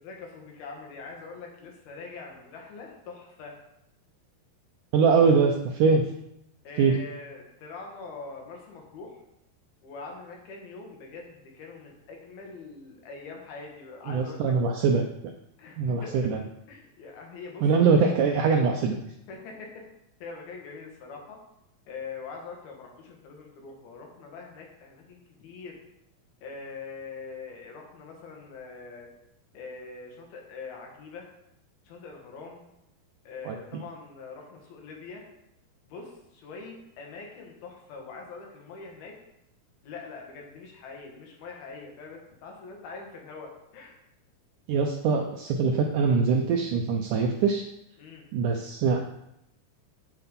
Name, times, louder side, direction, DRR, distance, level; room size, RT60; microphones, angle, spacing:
voice 1, 0.0-3.6 6.6-9.2 9.8-14.6 15.6-16.3 16.7-17.7 18.0-18.1 19.3-19.9 20.2-21.4 21.9-25.8 26.4-29.1 29.5-31.3 31.9-32.6 33.3-35.2 35.8-39.2 39.8-44.0 48.0-48.3, left 4 dB, 75° left, 1 dB, 3.6 m, -43 dB
voice 2, 4.9-6.1 6.8-7.0 14.1-15.0 15.8-16.4 17.6-19.0 33.5-33.8 44.7-47.6 48.3-49.0, right 5 dB, 80° right, 3 dB, 1.9 m, -23 dB
8.3 x 8.2 x 5.3 m, 0.82 s
omnidirectional pair, 4.5 m